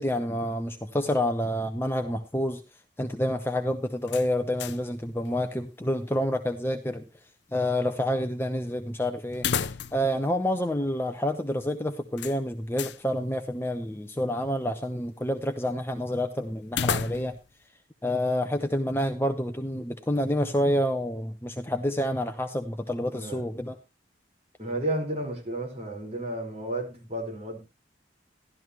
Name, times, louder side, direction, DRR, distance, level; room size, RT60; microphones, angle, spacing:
voice 1, 0.0-2.6 3.0-7.0 7.5-17.4 18.0-23.8, left 1 dB, 15° left, 0.7 m, -28 dB
sound 1, 4.1-5.0 5.3-5.4 9.3-10.2 10.5-10.6 12.2-13.0 16.7-17.5, left 6 dB, 70° left, 0.6 m, -32 dB
voice 2, 24.6-27.6, right 1 dB, 35° right, 4.8 m, -32 dB
13.0 x 12.5 x 3.1 m
head